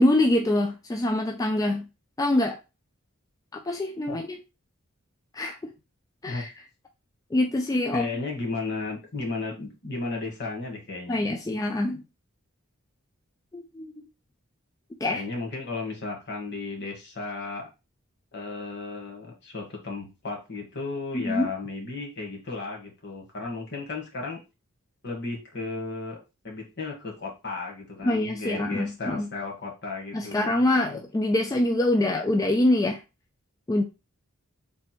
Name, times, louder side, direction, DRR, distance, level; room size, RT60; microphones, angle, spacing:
voice 1, 0.0-1.9 2.2-2.6 3.5-4.4 5.3-5.7 6.2-6.5 7.3-8.1 11.1-12.0 13.5-14.0 15.0-15.2 21.1-21.5 28.0-29.3 30.1-33.0 33.7-33.8, left 1 dB, 15° left, 2 dB, 0.3 m, -25 dB
voice 2, 7.9-11.2 15.1-17.7 18.3-24.4 25.0-26.2 26.4-31.0, left 3 dB, 55° left, 0 dB, 1.5 m, -34 dB
3.4 x 2.5 x 4.3 m, 0.27 s
head